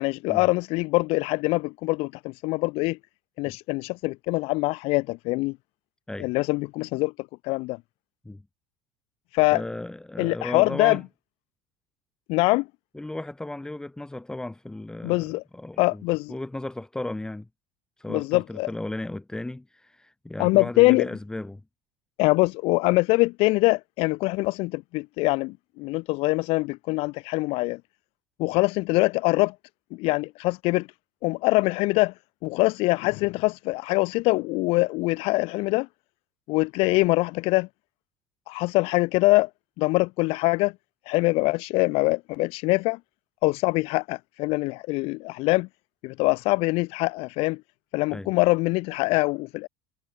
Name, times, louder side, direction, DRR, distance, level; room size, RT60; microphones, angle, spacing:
voice 1, 0.0-3.0 3.4-5.6 6.2-7.1 7.4-7.8 9.3-9.6 10.2-11.0 12.3-12.7 15.0-15.4 15.8-16.3 18.1-18.7 20.4-21.0 22.2-27.8 28.4-29.5 30.0-30.9 31.2-32.1 32.4-35.9 36.5-37.7 38.5-39.5 39.8-40.7 41.1-43.0 43.4-45.7 46.0-47.6 47.9-49.7, left 23 dB, 55° left, 0.5 m, -23 dB
voice 2, 9.5-11.0 12.9-16.0 16.3-17.5 18.0-21.6 48.1-48.3, left 2 dB, 5° left, 1.9 m, -35 dB
supercardioid pair, 140°, 12 cm